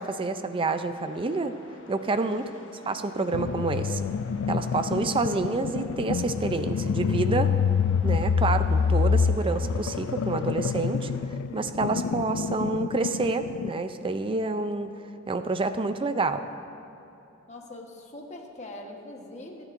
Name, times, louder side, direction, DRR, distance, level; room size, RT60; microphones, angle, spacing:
voice 1, 0.0-1.5 1.9-2.5 2.9-4.1 4.5-7.5 8.0-14.9 15.3-16.4, right 3 dB, 25° right, 9 dB, 0.5 m, -28 dB
sound 1, 0.9-11.2, left 2 dB, 60° left, 1.3 m, -50 dB
voice 2, 2.3-2.8 17.5-19.6, left 1 dB, 35° left, 1 dB, 1.2 m, -42 dB
sound 2, 3.3-13.8, left 6 dB, 80° left, 0.4 m, -27 dB
26.5 x 9.1 x 2.6 m, 2.9 s
head